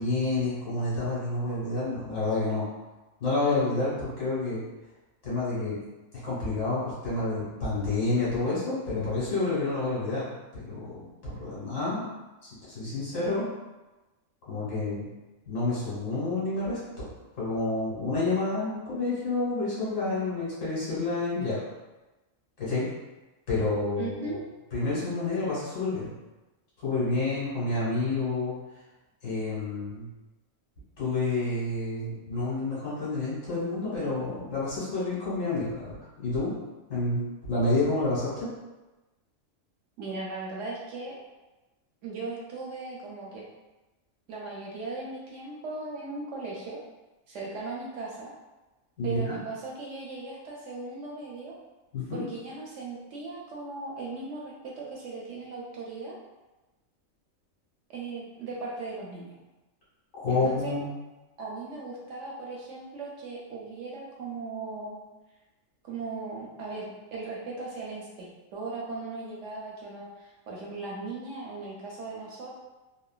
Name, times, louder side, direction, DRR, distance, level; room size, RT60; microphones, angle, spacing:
voice 1, 0.0-2.7 3.2-4.6 5.2-5.8 6.2-10.3 10.5-12.0 12.4-13.5 14.5-15.1 15.5-17.1 17.4-21.6 22.6-22.8 23.5-24.4 24.7-26.1 26.8-28.5 29.2-30.0 31.0-36.5 36.9-38.5 49.0-49.3 51.9-52.2 60.2-60.9, left 2 dB, 70° left, -8 dB, 1.6 m, -29 dB
voice 2, 24.0-24.4 40.0-41.1 42.0-43.4 44.3-46.8 47.3-48.3 49.0-51.5 52.1-56.2 57.9-59.3 60.3-60.7 61.4-65.0 65.8-72.5, right 3 dB, 70° right, -3 dB, 0.8 m, -38 dB
3.1 x 2.1 x 2.2 m, 1.1 s
omnidirectional pair, 1.4 m